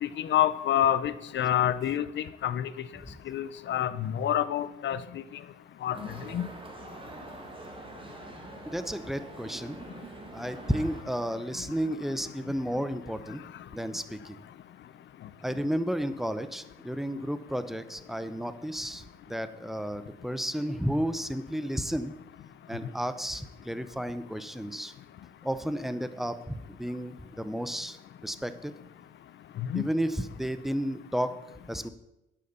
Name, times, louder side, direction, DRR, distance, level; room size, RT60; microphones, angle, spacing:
voice 1, 0.0-2.7 3.3-5.0 5.8-6.0 6.3-6.4 29.6-29.8, left 11 dB, 65° left, 14 dB, 0.7 m, -27 dB
sound 1, 5.9-11.0, right 2 dB, 25° right, 1.7 m, -45 dB
voice 2, 8.7-9.8 10.3-13.4 13.7-14.4 15.4-22.1 22.7-24.9 25.4-28.0 28.2-28.7 29.7-31.3 31.7-31.9, equal, ahead, 12 dB, 0.7 m, -32 dB
9.1 x 6.8 x 6.9 m, 0.92 s
cardioid pair, 90°, 20 cm